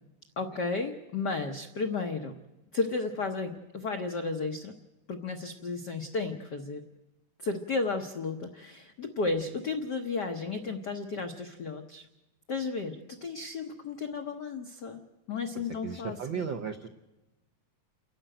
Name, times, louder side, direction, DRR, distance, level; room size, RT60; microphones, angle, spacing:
voice 1, 0.4-2.3 2.7-4.7 5.1-6.8 7.4-12.1 12.5-15.0 15.3-16.4, left 3 dB, 85° left, 5 dB, 0.9 m, -33 dB
voice 2, 15.5-16.9, right 6 dB, 80° right, 6 dB, 1.0 m, -36 dB
29.0 x 11.5 x 9.0 m, 1.0 s
omnidirectional pair, 3.5 m